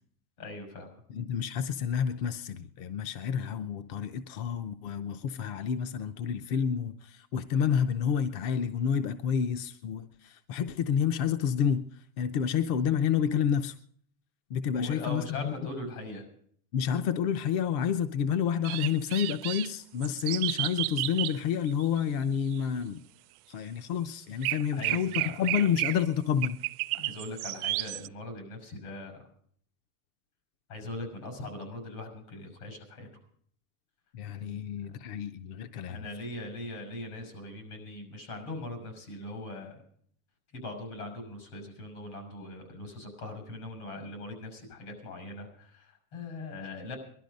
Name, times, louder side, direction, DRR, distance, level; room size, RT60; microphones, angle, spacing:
voice 1, 0.4-0.9 14.8-16.2 24.7-25.5 26.9-29.2 30.7-33.1 34.4-34.6 34.9-35.0 35.9-39.8 40.5-47.0, left 2 dB, 75° left, 6 dB, 6.3 m, -41 dB
voice 2, 1.1-11.9 12.2-13.8 14.5-15.5 16.7-23.0 23.5-26.6 34.1-36.0, left 8 dB, 40° left, 11 dB, 0.6 m, -29 dB
sound 1, 18.6-19.7 20.0-21.4 21.7-22.0 22.5-22.6 24.4-26.0 26.4-28.1, right 22 dB, 75° right, 0.5 m, -32 dB
20.0 x 12.0 x 5.2 m, 0.62 s
supercardioid pair, 165°, 44 cm